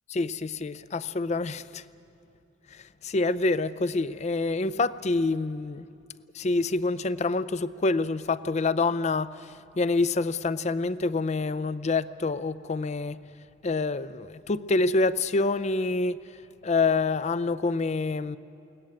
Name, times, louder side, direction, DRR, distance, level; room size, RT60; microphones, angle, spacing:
voice 1, 0.1-1.8 2.7-5.9 6.3-13.2 13.6-16.2 16.6-18.4, left 3 dB, 40° left, 0.5 m, -27 dB
22.0 x 18.0 x 8.9 m
head